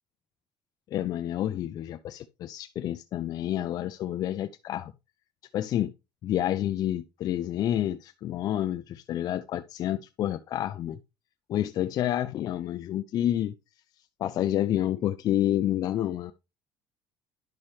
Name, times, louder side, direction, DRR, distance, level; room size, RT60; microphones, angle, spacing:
voice 1, 0.9-4.9 5.5-5.9 6.2-11.0 11.5-13.5 14.2-16.3, left 12 dB, 45° left, 0.4 m, -29 dB
10.5 x 5.5 x 3.1 m
cardioid pair, 145°, 9 cm